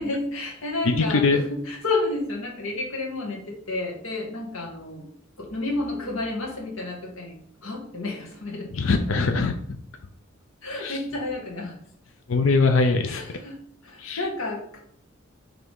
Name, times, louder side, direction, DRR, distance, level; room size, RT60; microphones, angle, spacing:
voice 1, 0.0-5.1 5.4-9.0 10.6-11.8 13.0-13.6 13.8-14.8, left 2 dB, 90° left, 0 dB, 1.8 m, -31 dB
voice 2, 0.9-1.4 8.7-9.5 10.8-11.0 12.3-13.2 14.0-14.2, left 3 dB, 75° left, 6 dB, 0.5 m, -21 dB
6.0 x 3.4 x 5.4 m, 0.65 s
head